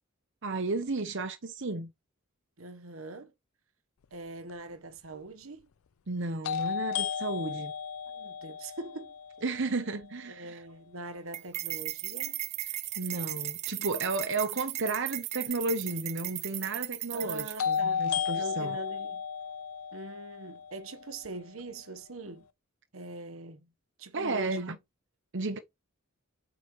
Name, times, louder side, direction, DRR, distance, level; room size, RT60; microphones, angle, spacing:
voice 1, 0.4-1.9 6.1-7.7 9.4-10.6 13.0-18.8 24.1-24.7 25.3-25.6, right 3 dB, 60° right, 1.0 m, -33 dB
voice 2, 2.6-3.3 4.1-5.7 7.5-7.7 8.1-9.1 10.3-12.4 17.1-19.2 19.9-22.4 22.9-23.7 24.0-24.6, right 2 dB, 75° right, 1.2 m, -43 dB
sound 1, 4.5-4.6 6.4-10.4 17.6-21.6, left 7 dB, 90° left, 0.5 m, -34 dB
sound 2, 11.3-17.8, right 14 dB, 30° right, 0.3 m, -36 dB
8.5 x 5.0 x 3.2 m
head